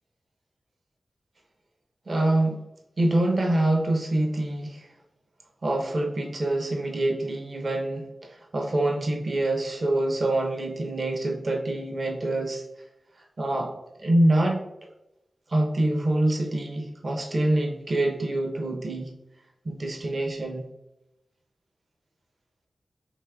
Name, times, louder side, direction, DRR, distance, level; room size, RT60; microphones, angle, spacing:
voice 1, 2.1-2.6 3.0-4.9 5.6-12.6 13.4-13.7 14.0-14.6 15.5-19.1 19.6-20.6, right 1 dB, 60° right, 1 dB, 0.7 m, -25 dB
4.8 x 3.2 x 2.3 m, 0.92 s
cardioid pair, 45°, 0 cm